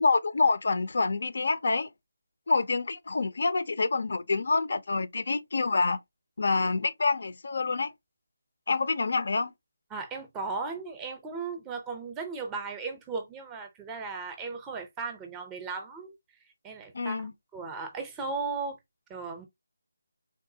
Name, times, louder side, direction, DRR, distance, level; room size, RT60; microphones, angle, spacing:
voice 1, 0.0-1.9 2.5-6.0 6.4-7.9 8.7-9.5 16.9-17.3, left 3 dB, 60° left, 0.5 m, -27 dB
voice 2, 9.9-16.1 16.6-18.8 19.1-19.5, right 4 dB, 15° right, 0.6 m, -36 dB
3.5 x 2.3 x 2.7 m
figure-of-eight pair, 160°, 0 cm